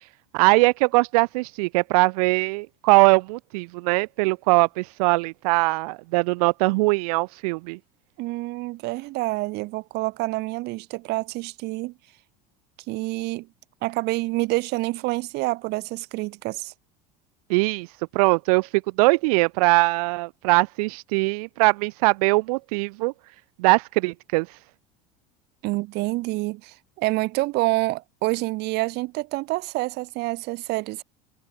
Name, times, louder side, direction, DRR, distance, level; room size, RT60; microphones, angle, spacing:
voice 1, 0.3-7.8 17.5-17.9 18.1-18.7 19.0-23.1 23.6-24.5, right 26 dB, 75° right, 0.8 m, -21 dB
voice 2, 8.2-11.9 12.9-13.5 13.8-16.7 25.6-31.0, right 21 dB, 60° right, 5.5 m, -27 dB
supercardioid pair, 110°, 19 cm